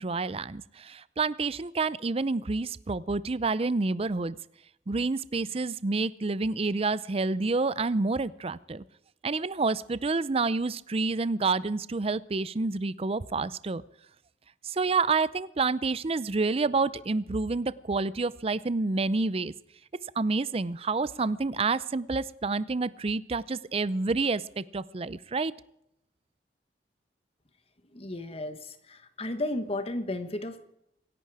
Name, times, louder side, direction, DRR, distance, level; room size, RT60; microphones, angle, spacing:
voice 1, 0.0-4.4 4.9-8.8 9.2-13.8 14.6-19.5 20.2-25.5, right 3 dB, 35° right, 17 dB, 0.5 m, -28 dB
voice 2, 27.9-30.7, left 1 dB, 35° left, 10 dB, 1.3 m, -34 dB
26.0 x 11.5 x 4.8 m, 0.77 s
head